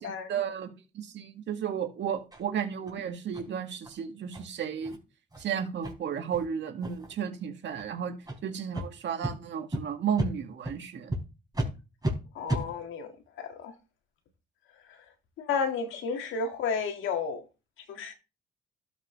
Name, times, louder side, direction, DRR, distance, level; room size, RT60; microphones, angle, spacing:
voice 1, 0.0-5.0 5.4-8.1 8.4-11.2, right 8 dB, 65° right, 2.0 m, -33 dB
sound 1, 2.3-2.4 2.9-3.0 3.3-3.5 3.8-3.9 4.3-4.4 4.8-5.0 5.3-5.4 5.8-5.9 6.3-6.4 6.8-7.1 7.7-7.9 8.2-8.4 8.7-8.9 9.2-9.3 9.7-9.8 10.2-10.3 10.6-10.8 11.1-11.2 11.5-11.7 12.0-12.1 12.5-12.6, right 1 dB, 20° right, 4.4 m, -32 dB
voice 2, 12.4-13.1 13.4-13.7 15.4-17.4 17.9-18.1, left 5 dB, 80° left, 1.9 m, -32 dB
12.5 x 6.1 x 3.2 m
cardioid pair, 90°, 20 cm